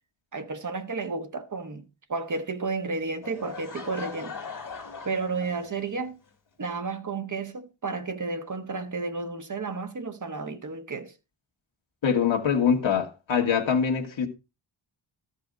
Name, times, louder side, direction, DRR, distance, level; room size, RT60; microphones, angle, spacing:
voice 1, 0.3-4.4 5.0-6.2 6.6-11.1, right 4 dB, 40° right, 1.2 m, -32 dB
Laughter / Crowd, 3.2-6.1, left 5 dB, 40° left, 2.4 m, -40 dB
voice 2, 12.0-14.3, left 7 dB, 70° left, 1.6 m, -24 dB
13.0 x 5.6 x 5.1 m
wide cardioid pair, 160°, 49 cm